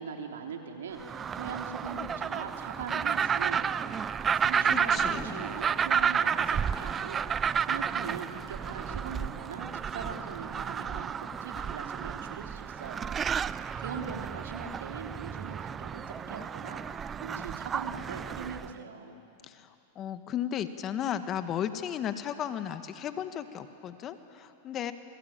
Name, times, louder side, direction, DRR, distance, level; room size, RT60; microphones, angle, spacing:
voice 1, 0.0-19.1, right 5 dB, 80° right, 3 dB, 3.4 m, -41 dB
sound 1, 1.0-18.7, right 7 dB, 25° right, 0.5 m, -31 dB
voice 2, 4.7-5.4 19.4-24.9, left 9 dB, 35° left, 10 dB, 1.5 m, -35 dB
28.5 x 22.0 x 9.0 m, 2.9 s
hypercardioid pair, 115°, 0 cm